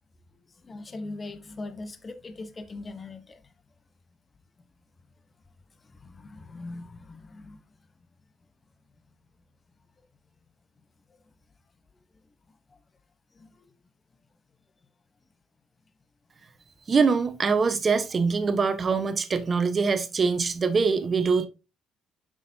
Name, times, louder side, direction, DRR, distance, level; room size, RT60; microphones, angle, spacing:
voice 1, 0.6-3.4 6.0-7.6 13.4-13.5, left 2 dB, 30° left, 1.0 m, -40 dB
voice 2, 16.9-21.5, right 5 dB, 35° right, 1.1 m, -23 dB
7.1 x 6.3 x 2.8 m
cardioid pair, 95°, 0 cm